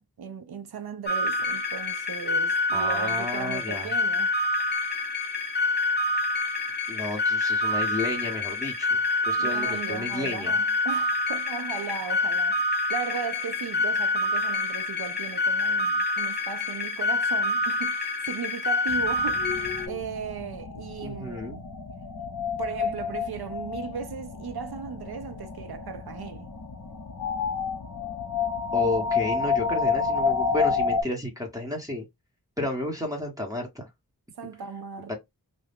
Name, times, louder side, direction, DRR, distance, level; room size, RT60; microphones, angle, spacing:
voice 1, 0.0-4.3 9.4-19.5 19.9-21.6 22.6-26.5 34.4-35.1, right 6 dB, 75° right, 0.5 m, -37 dB
sound 1, 1.1-19.9, left 2 dB, 25° left, 0.7 m, -27 dB
voice 2, 2.7-3.9 6.9-9.0 9.2-10.5 21.0-21.6 28.7-32.1 32.6-33.9 35.1-35.2, left 2 dB, 10° right, 0.9 m, -32 dB
sound 2, 18.9-31.0, left 5 dB, 60° left, 0.8 m, -30 dB
2.6 x 2.3 x 3.4 m
wide cardioid pair, 65°, 38 cm